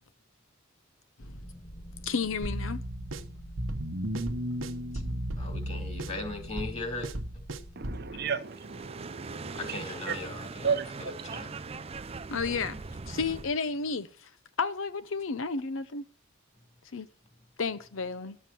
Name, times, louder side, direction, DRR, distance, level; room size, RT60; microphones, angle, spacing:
sound 1, 1.2-8.3, equal, 15° left, 0.9 m, -46 dB
voice 1, 2.0-2.8 12.3-12.8 13.1-14.3 14.6-16.0 16.9-17.1 17.6-18.4, left 4 dB, 75° left, 0.7 m, -32 dB
sound 2, 2.4-8.1, right 1 dB, 80° right, 1.0 m, -35 dB
voice 2, 5.4-7.1 9.5-10.8 11.3-11.5, left 2 dB, 35° left, 2.8 m, -38 dB
voice 3, 7.8-10.2 10.6-11.4, right 6 dB, 55° right, 0.9 m, -34 dB
sound 3, 8.4-13.6, right 4 dB, 30° right, 0.5 m, -41 dB
12.0 x 7.3 x 7.6 m
head